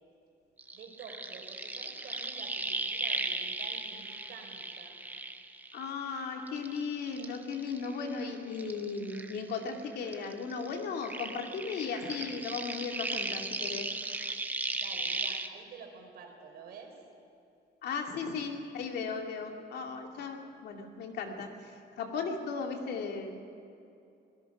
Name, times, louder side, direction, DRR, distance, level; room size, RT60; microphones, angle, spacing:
sound 1, 0.6-6.1 6.5-9.8 10.1-15.5, right 2 dB, 10° right, 0.8 m, -37 dB
voice 1, 0.7-5.0 14.7-17.0, right 5 dB, 60° right, 2 dB, 4.1 m, -50 dB
voice 2, 5.7-13.9 17.8-21.5 22.0-23.3, left 5 dB, 65° left, 3 dB, 2.6 m, -36 dB
26.0 x 18.5 x 6.1 m, 2.6 s
cardioid pair, 170°, 18 cm